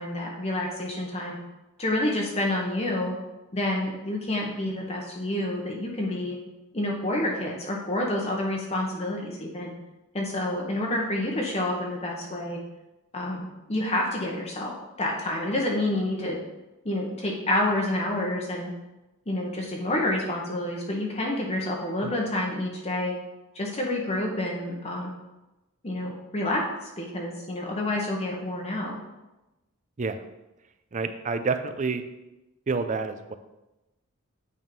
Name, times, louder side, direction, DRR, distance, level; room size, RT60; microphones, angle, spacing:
voice 1, 0.0-1.4 1.8-3.1 3.5-6.4 6.7-9.7 10.1-12.6 13.1-16.4 16.8-18.7 19.3-23.1 23.5-25.1 25.8-26.7 27.0-29.0, left 1 dB, 30° left, -1 dB, 1.0 m, -28 dB
voice 2, 30.9-32.0 32.7-33.3, right 4 dB, 35° right, 9 dB, 0.5 m, -28 dB
8.6 x 3.6 x 5.3 m, 1.0 s
head